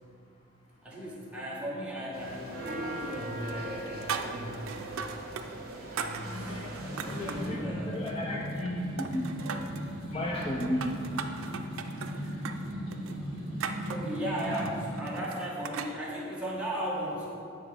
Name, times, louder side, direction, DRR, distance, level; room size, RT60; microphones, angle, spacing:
voice 1, 0.8-5.2 5.9-6.6 7.2-7.9 13.9-17.3, equal, 5° right, -6 dB, 1.1 m, -36 dB
sound 1, 2.1-7.5, right 2 dB, 50° right, 1.1 m, -41 dB
sound 2, 2.7-3.2 3.5-5.5 5.7-7.5 7.9-8.7 9.0-9.9 10.4-15.9, right 6 dB, 85° right, 0.4 m, -39 dB
voice 2, 6.3-6.7 7.0-9.3 10.1-11.0, left 1 dB, 30° left, -2 dB, 0.4 m, -34 dB
sound 3, 6.7-15.0, equal, 75° left, 1.6 m, -37 dB
8.8 x 3.5 x 4.8 m, 2.5 s
head